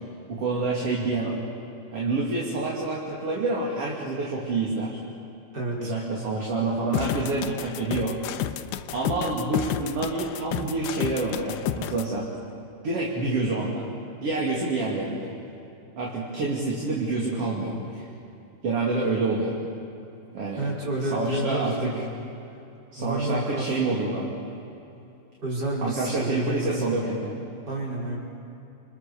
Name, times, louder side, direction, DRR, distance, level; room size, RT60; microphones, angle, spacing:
voice 1, 0.3-1.4 1.9-5.0 5.8-8.2 8.9-12.3 12.8-13.9 14.2-15.3 16.0-18.1 18.6-19.6 20.3-20.7 21.0-22.0 22.9-24.3 25.8-27.3, right 3 dB, 40° right, -3 dB, 3.2 m, -27 dB
voice 2, 5.5-5.9 20.6-22.1 23.0-24.0 25.4-27.0 27.7-28.2, right 1 dB, 25° right, -3 dB, 5.2 m, -30 dB
sound 1, 6.9-12.0, left 12 dB, 85° left, 2.9 m, -30 dB
28.5 x 26.5 x 6.9 m, 2.8 s
omnidirectional pair, 4.8 m